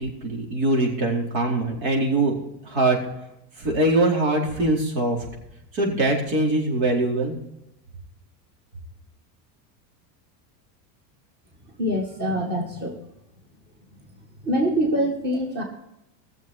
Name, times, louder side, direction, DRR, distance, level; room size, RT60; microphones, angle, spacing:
voice 1, 0.0-2.4 2.6-3.0 3.6-5.2 5.7-7.3, right 2 dB, 90° right, 0 dB, 4.5 m, -22 dB
voice 2, 11.8-13.0 14.4-15.6, equal, 20° right, 2 dB, 1.9 m, -24 dB
19.5 x 7.2 x 4.5 m, 0.86 s
supercardioid pair, 170°, 49 cm